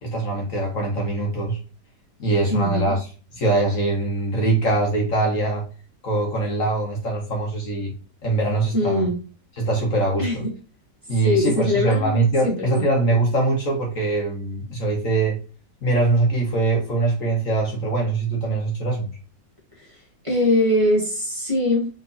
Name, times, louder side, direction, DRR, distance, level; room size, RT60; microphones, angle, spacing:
voice 1, 0.0-1.6 2.2-5.6 6.0-7.9 8.2-9.1 9.6-10.4 11.1-15.4 15.8-19.1, right 2 dB, 50° left, 0 dB, 1.5 m, -22 dB
voice 2, 2.5-2.9 8.7-9.2 10.2-10.5 11.2-12.9 19.7-21.9, left 1 dB, 20° right, -3 dB, 1.8 m, -22 dB
4.6 x 3.8 x 2.6 m, 0.35 s
omnidirectional pair, 1.9 m